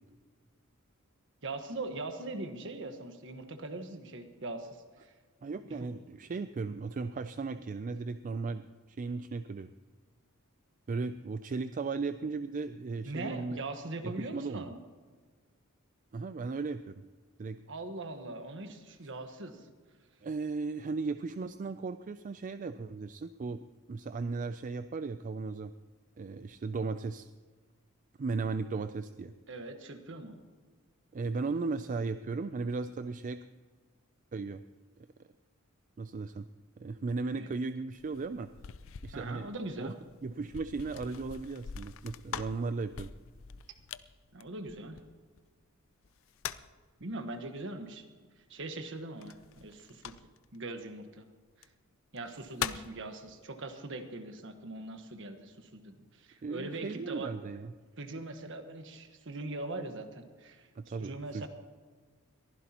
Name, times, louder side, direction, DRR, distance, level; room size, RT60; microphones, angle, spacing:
voice 1, 1.4-4.7 5.0-5.1 13.0-14.8 17.7-19.7 29.5-30.4 37.3-37.5 39.1-39.9 44.3-45.0 47.0-48.0 48.5-50.1 50.5-51.3 51.6-51.7 52.1-57.3 58.0-60.7 61.0-61.5, right 2 dB, 60° right, 6 dB, 1.4 m, -41 dB
voice 2, 5.4-9.7 10.9-13.6 14.0-14.7 16.1-17.0 17.4-17.6 20.2-25.7 26.2-27.3 28.2-29.3 31.1-33.4 34.3-34.6 36.0-36.5 36.8-38.5 39.0-39.5 39.8-39.9 40.2-43.1 56.4-57.7 60.8-61.5, right 4 dB, 35° right, 11 dB, 0.4 m, -36 dB
sound 1, 38.0-45.4 46.0-46.8 49.2-50.6 51.5-51.7 52.2-53.0, left 8 dB, 65° left, 0.5 m, -43 dB
22.5 x 15.5 x 3.0 m, 1.5 s
head